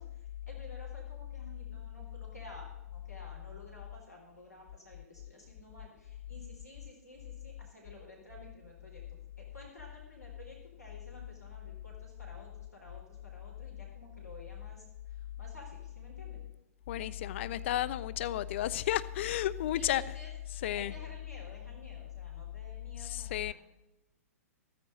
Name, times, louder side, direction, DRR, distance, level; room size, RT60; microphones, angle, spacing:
voice 1, 0.0-9.0 9.4-16.5 19.7-20.3 20.7-23.5, left 1 dB, 85° left, 4.1 m, -53 dB
voice 2, 16.9-20.0 20.5-21.0 23.0-23.5, left 12 dB, 50° left, 0.6 m, -32 dB
14.0 x 13.5 x 4.0 m
figure-of-eight pair, 110°, 8 cm